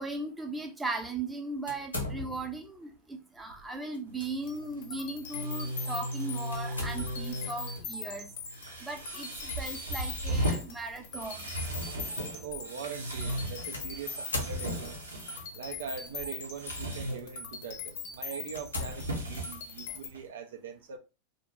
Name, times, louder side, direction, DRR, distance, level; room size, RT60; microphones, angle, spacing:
voice 1, 0.0-8.3 8.8-11.4, right 2 dB, 10° right, 0.6 m, -37 dB
sound 1, 1.7-2.7 3.9-4.3 4.8-4.9 6.5-7.4 9.5-9.8 10.6-10.7 13.7-15.1 16.0-16.5 17.1-17.3 17.8-17.9 18.5-19.7, left 2 dB, 90° left, 0.7 m, -38 dB
sound 2, 4.1-20.3, equal, 90° right, 0.8 m, -38 dB
sound 3, 4.4-20.1, left 5 dB, 55° left, 0.6 m, -42 dB
voice 2, 12.4-15.0 15.5-21.0, right 7 dB, 70° right, 0.4 m, -42 dB
2.5 x 2.1 x 3.0 m
hypercardioid pair, 90°, 0 cm